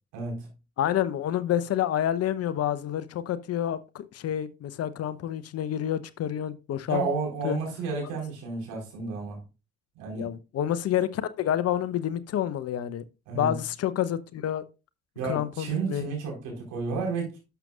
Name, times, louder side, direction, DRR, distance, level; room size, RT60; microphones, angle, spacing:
voice 1, 0.1-0.5 6.9-9.4 10.0-10.3 13.3-13.5 15.2-17.4, right 4 dB, 65° right, 4.4 m, -31 dB
voice 2, 0.8-7.0 7.4-7.6 10.2-13.0 13.3-14.6 15.2-16.1, left 11 dB, 50° left, 0.8 m, -28 dB
12.0 x 6.8 x 2.4 m
figure-of-eight pair, 50°, 32 cm